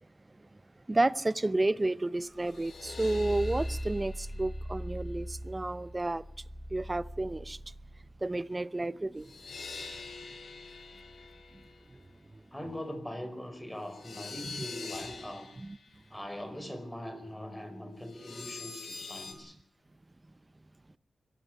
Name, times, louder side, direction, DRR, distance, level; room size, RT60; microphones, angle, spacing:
voice 1, 0.9-6.2 6.7-7.6 8.2-9.3 14.4-14.6 15.6-15.8, right 2 dB, 25° right, 0.7 m, -31 dB
sound 1, 2.3-8.2 9.1-12.0 13.9-15.9 18.0-19.3, left 1 dB, 75° left, 6.2 m, -41 dB
voice 2, 12.5-15.5 16.1-19.6, left 1 dB, 10° left, 5.3 m, -41 dB
22.5 x 13.5 x 9.7 m
cardioid pair, 75°, 0 cm